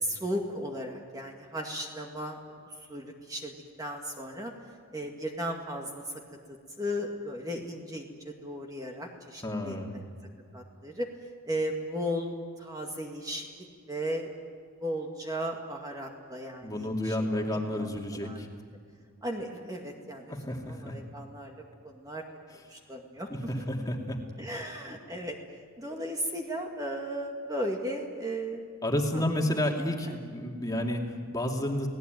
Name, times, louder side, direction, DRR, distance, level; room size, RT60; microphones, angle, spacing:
voice 1, 0.0-2.6 2.9-3.5 3.8-4.5 4.9-6.2 6.8-10.0 10.5-11.1 11.5-14.3 14.8-18.5 19.2-21.6 21.8-22.2 22.7-23.5 24.4-25.4 25.8-28.7 29.1-29.9, equal, 15° right, 1 dB, 2.1 m, -36 dB
voice 2, 9.4-10.0 16.6-18.5 20.3-21.0 23.3-24.2 28.8-31.9, left 1 dB, 15° left, 1 dB, 2.5 m, -31 dB
30.0 x 18.5 x 9.3 m, 2.1 s
head